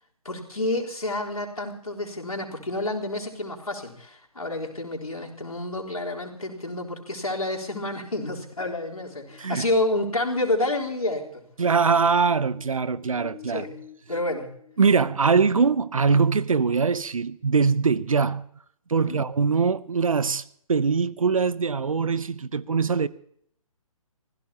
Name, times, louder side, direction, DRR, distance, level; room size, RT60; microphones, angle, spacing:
voice 1, 0.2-11.4 13.5-13.8 14.1-14.5 19.0-19.2, left 2 dB, 80° left, 3.8 m, -29 dB
sound 1, 7.8-11.4 11.6-15.8, left 11 dB, 15° left, 1.3 m, -49 dB
voice 2, 11.6-13.6 14.8-18.5 18.9-20.4 20.7-23.1, right 5 dB, 70° right, 0.8 m, -22 dB
25.5 x 16.0 x 2.9 m
figure-of-eight pair, 135°, 18 cm